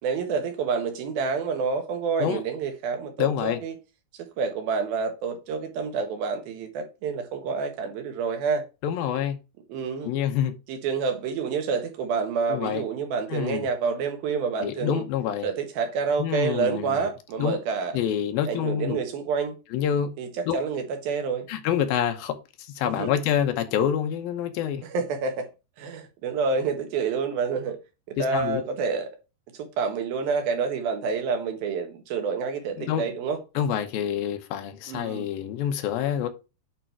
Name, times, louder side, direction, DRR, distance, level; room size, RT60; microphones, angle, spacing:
voice 1, 0.0-3.8 4.1-8.7 9.7-10.1 10.7-15.0 15.4-18.0 18.5-19.6 20.2-21.5 22.8-23.1 24.8-25.5 25.8-27.8 28.1-29.2 29.5-33.4 34.9-35.3, right 5 dB, 70° right, 2.9 m, -28 dB
voice 2, 3.2-3.6 8.8-9.4 10.0-10.5 12.5-12.8 13.3-13.6 14.6-15.5 16.2-17.0 17.4-17.6 17.9-19.0 19.7-20.1 20.5-20.6 21.5-24.8 28.2-28.6 32.9-33.0 33.6-36.3, left 9 dB, 75° left, 2.4 m, -27 dB
8.8 x 3.8 x 4.5 m
omnidirectional pair, 4.7 m